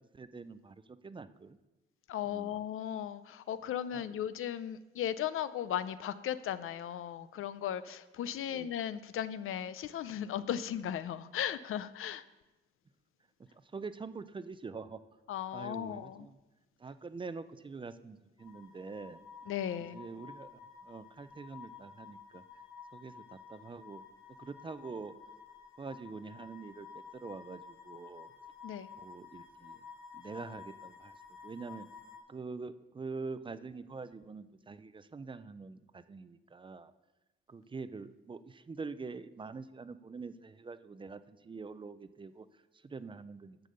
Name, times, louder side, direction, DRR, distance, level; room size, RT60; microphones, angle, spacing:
voice 1, 0.1-1.6 2.2-2.6 3.9-4.2 8.4-8.7 13.7-15.0 15.5-16.4 16.8-19.2 19.8-20.5 20.8-22.4 22.9-24.0 24.4-25.1 25.8-28.3 29.0-29.8 30.1-31.2 31.4-31.9 32.3-36.9 37.5-42.5 42.8-43.6, right 4 dB, 25° right, 13 dB, 0.5 m, -45 dB
voice 2, 2.1-12.2 15.3-16.3 19.5-20.0 28.6-28.9, left 10 dB, 80° left, 14 dB, 0.6 m, -36 dB
sound 1, 18.4-32.2, left 6 dB, 60° left, 2.1 m, -52 dB
9.9 x 6.9 x 6.7 m, 1.1 s
cardioid pair, 130°, 21 cm